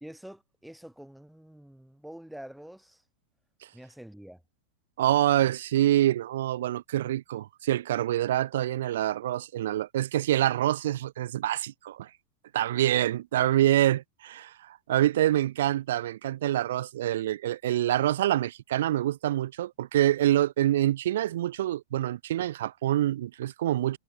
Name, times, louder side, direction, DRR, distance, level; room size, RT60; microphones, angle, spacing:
voice 1, 0.0-3.0 3.7-4.4, equal, ahead, 2.7 m, -46 dB
voice 2, 5.0-12.1 12.5-24.0, right 13 dB, 60° right, 1.7 m, -26 dB
figure-of-eight pair, 90°, 0 cm